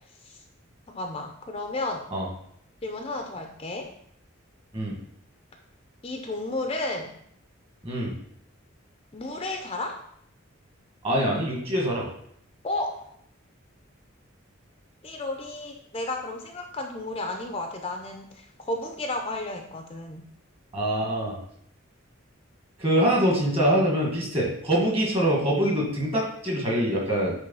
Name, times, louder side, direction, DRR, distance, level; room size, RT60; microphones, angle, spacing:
voice 1, 0.9-2.1 2.8-3.9 6.0-7.1 9.1-10.0 12.6-13.1 15.0-20.3, left 2 dB, 25° left, 3 dB, 0.7 m, -32 dB
voice 2, 11.0-12.1 20.7-21.4 22.8-27.3, right 1 dB, 25° right, -2 dB, 2.0 m, -24 dB
8.6 x 3.4 x 5.6 m, 0.68 s
head